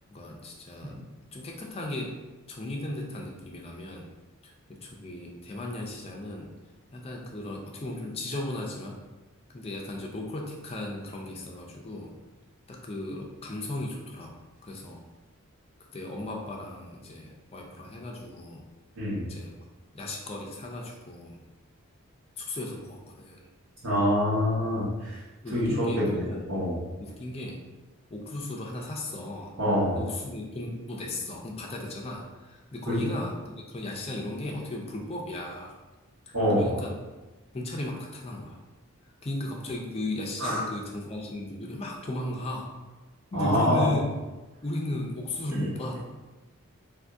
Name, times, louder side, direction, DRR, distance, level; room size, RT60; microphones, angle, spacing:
voice 1, 0.1-1.0 1.3-2.1 2.5-4.1 4.4-6.5 6.9-9.0 9.5-12.1 12.7-14.3 14.6-15.0 15.9-18.6 19.3-19.6 19.9-21.4 22.4-23.4 25.4-26.5 27.0-27.6 28.1-29.5 29.9-35.8 36.3-37.0 37.5-38.6 39.0-42.7 43.3-44.1 44.6-46.0, left 1 dB, 25° left, 0 dB, 0.4 m, -36 dB
voice 2, 18.9-19.3 23.8-25.2 25.5-26.2 26.5-26.7 29.6-30.0 32.9-33.1 36.3-36.7 40.4-40.6 43.3-43.9 45.5-45.7, equal, 80° right, -13 dB, 1.2 m, -25 dB
2.6 x 2.6 x 3.5 m, 1.2 s
head